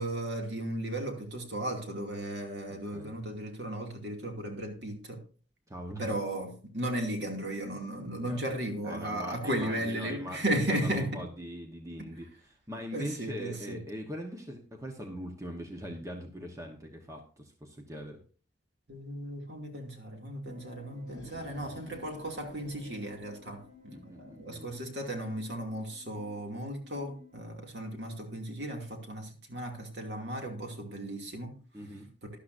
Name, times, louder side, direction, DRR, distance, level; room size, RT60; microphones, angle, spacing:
voice 1, 0.0-5.2 6.0-11.2 12.9-13.8 18.9-31.6 32.2-32.3, right 1 dB, 60° right, 2 dB, 2.5 m, -35 dB
voice 2, 5.7-6.1 8.3-8.4 8.8-12.3 12.7-18.2 23.9-24.7 31.7-32.1, equal, 15° right, 3 dB, 1.2 m, -41 dB
sound 1, 20.4-27.4, left 3 dB, 35° right, 2.8 m, -55 dB
sound 2, 20.9-24.0, equal, 15° left, 5.5 m, -54 dB
12.5 x 11.5 x 2.7 m, 0.39 s
head